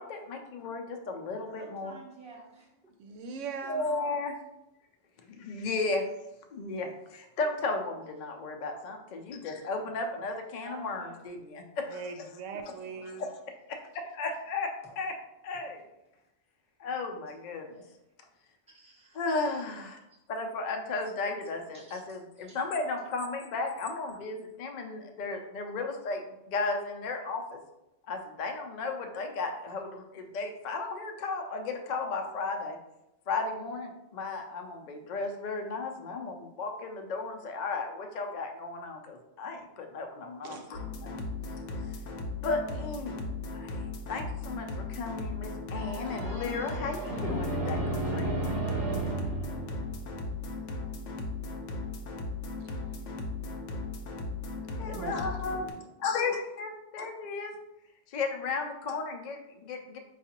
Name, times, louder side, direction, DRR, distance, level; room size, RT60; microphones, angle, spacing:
voice 1, 0.0-2.0 3.7-4.3 5.2-6.0 6.5-12.0 13.2-13.3 13.7-14.7 15.0-15.2 15.4-15.9 16.8-17.8 19.1-20.0 20.3-27.6 28.1-32.8 33.3-40.6 41.0-41.2 41.9-42.0 42.4-43.8 44.1-48.4 54.8-55.7 56.0-57.5 58.1-60.0, left 3 dB, 60° left, 4 dB, 0.4 m, -34 dB
voice 2, 1.6-2.7 10.6-11.2 13.1-13.2 18.7-19.2 21.7-22.0 22.4-22.6, right 3 dB, 10° right, -3 dB, 0.5 m, -50 dB
voice 3, 3.0-4.0 9.8-9.9 11.8-13.3 40.4-40.7 52.6-52.8 54.8-55.1, right 5 dB, 85° right, 5 dB, 0.9 m, -40 dB
sound 1, 40.7-55.7, left 3 dB, 90° left, 0.9 m, -37 dB
sound 2, 45.7-50.5, right 2 dB, 55° right, 0.8 m, -34 dB
4.6 x 2.4 x 2.8 m, 0.90 s
omnidirectional pair, 1.2 m